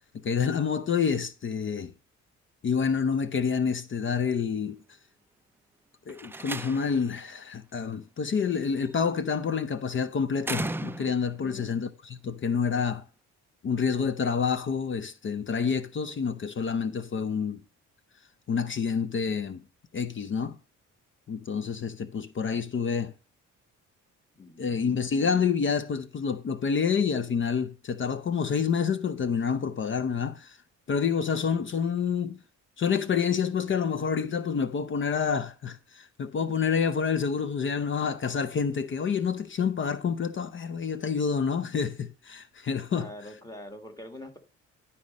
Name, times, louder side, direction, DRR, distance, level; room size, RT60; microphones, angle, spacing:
voice 1, 0.2-1.9 2.6-4.8 6.1-13.0 13.6-17.6 18.5-19.6 19.9-20.6 21.3-23.1 24.6-30.6 30.9-32.4 32.8-43.1, left 6 dB, 40° left, 0.6 m, -28 dB
Slam, 6.1-7.1 8.6-9.1 10.4-11.4, right 2 dB, 10° right, 0.3 m, -35 dB
voice 2, 11.4-11.8 24.3-25.0 42.9-44.4, left 1 dB, 10° left, 1.7 m, -44 dB
11.0 x 4.2 x 5.1 m
cardioid pair, 90°, 30 cm